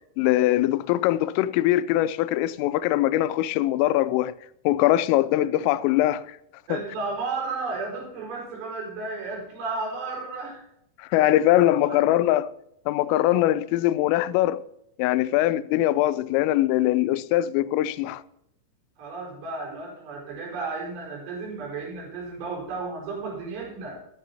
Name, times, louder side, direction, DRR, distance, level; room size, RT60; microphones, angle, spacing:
voice 1, 0.2-4.3 4.7-6.4 6.7-6.8 11.0-12.5 12.9-14.6 15.0-18.2, left 14 dB, 90° left, 3.2 m, -22 dB
voice 2, 6.7-10.6 11.8-12.0 19.0-24.0, right 3 dB, 65° right, 7.0 m, -33 dB
14.0 x 14.0 x 2.8 m
omnidirectional pair, 5.7 m